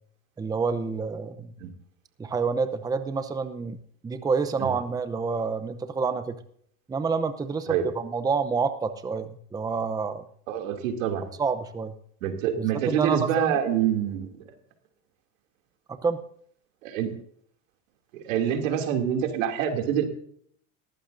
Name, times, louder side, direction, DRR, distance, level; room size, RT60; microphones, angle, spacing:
voice 1, 0.4-1.5 2.2-3.8 4.0-6.3 6.9-10.2 11.4-12.0 12.6-13.5 16.0-16.2, right 5 dB, 10° right, 10 dB, 0.7 m, -28 dB
voice 2, 10.5-11.3 12.2-14.3 16.8-17.1 18.1-20.0, right 9 dB, 90° right, 4 dB, 2.8 m, -26 dB
19.0 x 14.5 x 2.7 m, 0.63 s
supercardioid pair, 135°, 38 cm